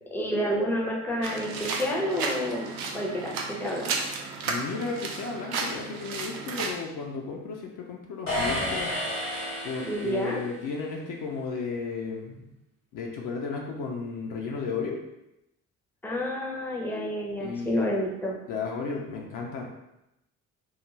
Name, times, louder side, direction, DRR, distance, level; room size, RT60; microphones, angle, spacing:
voice 1, 0.1-3.9 9.9-10.4 16.0-18.4, equal, 5° left, -2 dB, 0.6 m, -29 dB
sound 1, 1.2-6.7, right 4 dB, 60° right, 0.5 m, -33 dB
voice 2, 4.4-8.9 9.6-12.5 12.9-15.0 17.4-17.8 18.5-19.6, left 4 dB, 55° left, -1 dB, 0.6 m, -34 dB
sound 2, 8.3-10.5, left 1 dB, 90° left, 0.9 m, -31 dB
2.4 x 2.1 x 3.1 m, 0.88 s
figure-of-eight pair, 45°, 39 cm